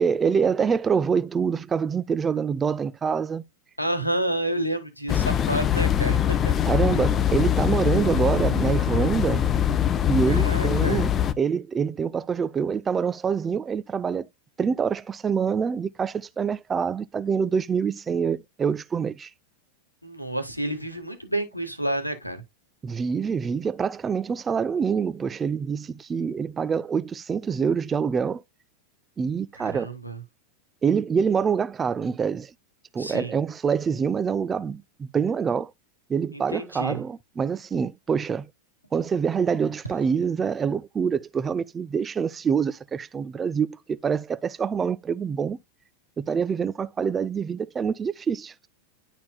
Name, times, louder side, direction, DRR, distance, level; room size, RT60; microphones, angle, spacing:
voice 1, 0.0-3.4 6.7-9.5 10.1-11.1 11.4-14.3 14.6-19.3 22.8-28.4 29.2-29.9 30.8-32.5 32.9-35.7 36.1-38.5 38.9-45.6 46.2-48.7, right 6 dB, 20° right, 0.4 m, -25 dB
voice 2, 3.8-6.4 10.3-11.1 20.0-22.4 29.6-30.2 33.0-33.3 36.3-37.0, right 1 dB, 90° left, 1.3 m, -29 dB
sound 1, 5.1-11.3, left 10 dB, 25° left, 0.6 m, -23 dB
11.0 x 4.3 x 2.2 m
figure-of-eight pair, 90°, 0 cm